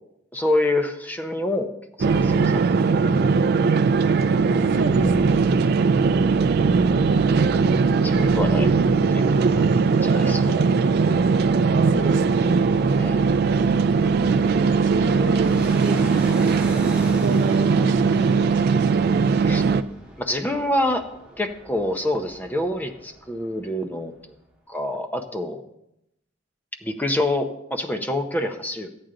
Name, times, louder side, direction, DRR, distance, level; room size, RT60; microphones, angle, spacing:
voice 1, 0.3-1.7 2.0-2.7 8.0-9.6 10.0-10.5 13.0-13.3 19.4-19.6 20.2-21.1 21.4-24.1 24.7-25.6 26.8-28.9, left 1 dB, 10° left, 5 dB, 0.6 m, -26 dB
sound 1, 2.0-19.8, right 5 dB, 55° right, 0.4 m, -19 dB
voice 2, 4.5-5.6 11.7-12.5 14.6-16.7 17.1-19.2, right 2 dB, 70° right, 6 dB, 0.8 m, -32 dB
Fixed-wing aircraft airplane, 7.2-23.7 24.0-24.1, right 1 dB, 5° right, 2.2 m, -41 dB
13.5 x 8.8 x 3.8 m, 0.82 s
head